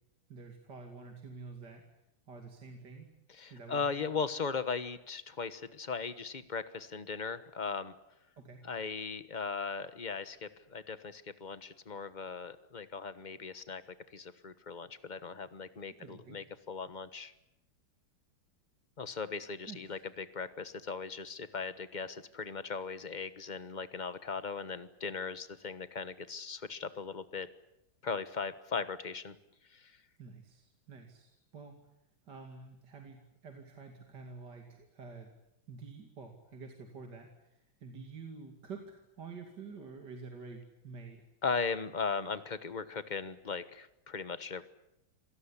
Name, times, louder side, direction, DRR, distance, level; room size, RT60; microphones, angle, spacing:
voice 1, 0.3-1.8 2.3-3.1 3.5-4.1 8.4-8.6 16.0-16.4 19.7-20.0 30.2-31.8 32.3-35.3 35.7-41.2, right 4 dB, 50° right, 3 dB, 3.1 m, -48 dB
voice 2, 3.3-7.9 8.6-13.8 14.1-17.3 19.0-27.5 28.0-29.3 29.7-29.9 41.4-44.6, left 5 dB, 30° left, 13 dB, 0.9 m, -38 dB
26.5 x 18.0 x 9.9 m, 0.86 s
omnidirectional pair, 2.4 m